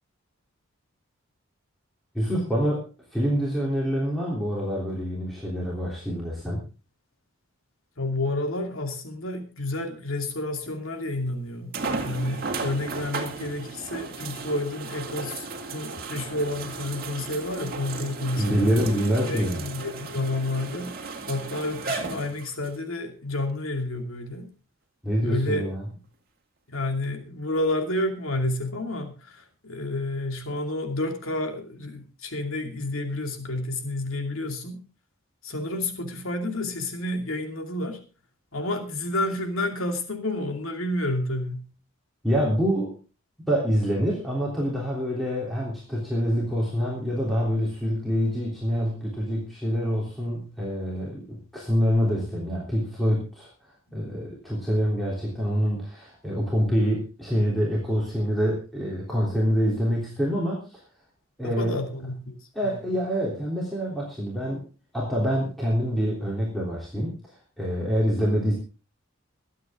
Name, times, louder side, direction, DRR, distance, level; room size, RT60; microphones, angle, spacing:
voice 1, 2.1-6.7 18.4-19.6 25.0-25.8 42.2-43.0 43.5-53.5 53.9-60.8 61.4-61.9 62.5-64.6 64.9-68.5, equal, ahead, -5 dB, 3.3 m, -26 dB
voice 2, 8.0-11.8 12.0-18.7 19.2-20.9 21.3-24.5 25.2-25.6 26.7-34.8 35.4-38.0 38.5-41.7 61.4-62.3, left 1 dB, 80° left, 5 dB, 2.6 m, -30 dB
sound 1, 10.7-10.8 11.7-22.8 23.5-23.6 27.0-27.1, right 3 dB, 45° right, 2.2 m, -35 dB
23.5 x 8.5 x 3.7 m, 0.34 s
head